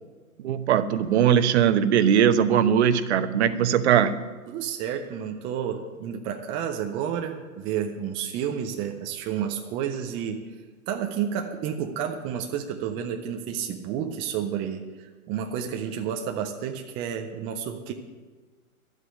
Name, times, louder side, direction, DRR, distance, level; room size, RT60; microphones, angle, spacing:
voice 1, 0.4-4.1, right 9 dB, 50° right, 12 dB, 1.0 m, -20 dB
voice 2, 4.5-10.4 10.9-17.9, right 8 dB, 15° right, 4 dB, 0.4 m, -31 dB
12.0 x 8.2 x 10.0 m, 1.3 s
hypercardioid pair, 130°, 43 cm